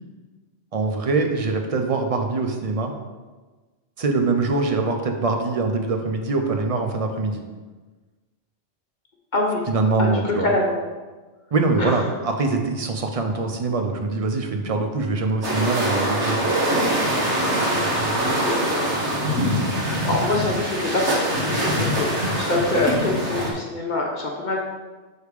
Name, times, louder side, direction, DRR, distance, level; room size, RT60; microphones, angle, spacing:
voice 1, 0.7-2.9 4.0-7.4 9.7-10.5 11.5-16.4, right 3 dB, 40° right, 4 dB, 0.6 m, -23 dB
voice 2, 9.3-9.7 10.0-10.8 11.8-12.0 17.6-17.9 18.4-18.8 20.1-24.6, left 2 dB, 45° left, -1 dB, 0.9 m, -25 dB
sound 1, 15.4-23.5, right 1 dB, 80° right, 1.7 m, -23 dB
6.4 x 3.5 x 4.8 m, 1.3 s
omnidirectional pair, 1.2 m